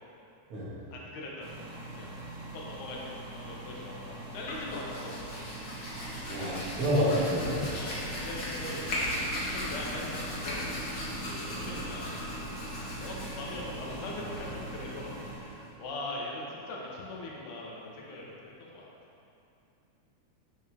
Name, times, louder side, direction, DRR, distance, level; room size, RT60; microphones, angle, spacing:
voice 1, 0.9-2.2 2.5-5.5 7.7-8.9 9.2-9.3 9.5-10.7 11.3-12.6 13.0-18.9, left 2 dB, 90° left, -3 dB, 2.6 m, -41 dB
sound 1, 1.4-15.4, right 2 dB, 80° right, 2.7 m, -43 dB
Hands, 4.3-15.7, left 1 dB, 40° left, 1.4 m, -38 dB
voice 2, 6.3-7.6 11.6-11.8, equal, 50° right, -8 dB, 2.2 m, -28 dB
8.9 x 6.6 x 3.5 m, 2.7 s
omnidirectional pair, 3.4 m